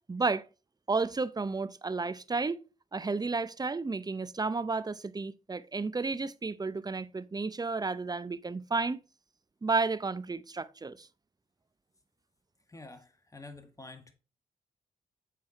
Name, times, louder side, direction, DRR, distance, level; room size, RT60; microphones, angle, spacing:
voice 1, 0.1-0.4 0.9-2.6 2.9-9.0 9.6-11.1, right 3 dB, 25° right, 0.6 m, -32 dB
voice 2, 12.7-14.1, left 2 dB, 20° left, 1.8 m, -48 dB
7.6 x 4.7 x 4.4 m
supercardioid pair, 45°, 16 cm